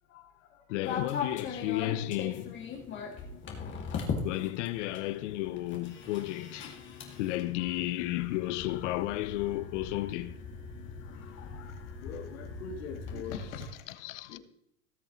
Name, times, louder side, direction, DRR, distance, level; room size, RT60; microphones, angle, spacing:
voice 1, 0.1-0.6 7.6-7.8 11.0-13.7 14.3-14.4, left 5 dB, 80° left, 2.9 m, -43 dB
voice 2, 0.7-2.6 4.2-6.8 7.2-10.4 13.3-14.4, left 16 dB, 60° left, 0.8 m, -33 dB
sound 1, 0.8-13.5, left 5 dB, 30° left, 2.5 m, -40 dB
18.5 x 7.1 x 3.2 m
supercardioid pair, 130°, 41 cm